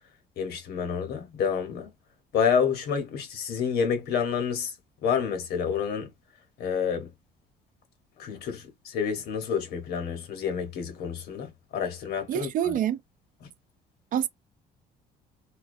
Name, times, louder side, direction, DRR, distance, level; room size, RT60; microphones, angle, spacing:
voice 1, 0.4-1.9 2.3-4.7 5.0-6.1 6.6-7.1 8.2-12.7 13.4-13.5, left 7 dB, 70° left, 1.0 m, -29 dB
voice 2, 12.3-13.0 14.1-14.3, right 10 dB, 55° right, 0.4 m, -26 dB
2.2 x 2.2 x 2.5 m
cardioid pair, 110°, 17 cm